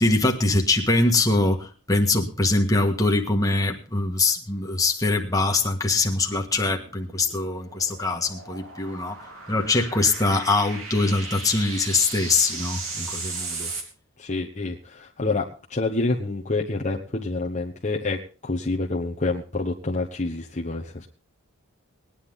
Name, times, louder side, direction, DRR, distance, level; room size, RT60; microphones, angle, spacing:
voice 1, 0.0-9.2 9.5-13.7, left 2 dB, 15° left, 2 dB, 1.7 m, -23 dB
sound 1, 6.4-13.8, right 3 dB, 70° right, 3.0 m, -37 dB
voice 2, 14.2-21.1, left 3 dB, 35° left, -1 dB, 1.1 m, -28 dB
20.5 x 10.0 x 3.7 m, 0.37 s
head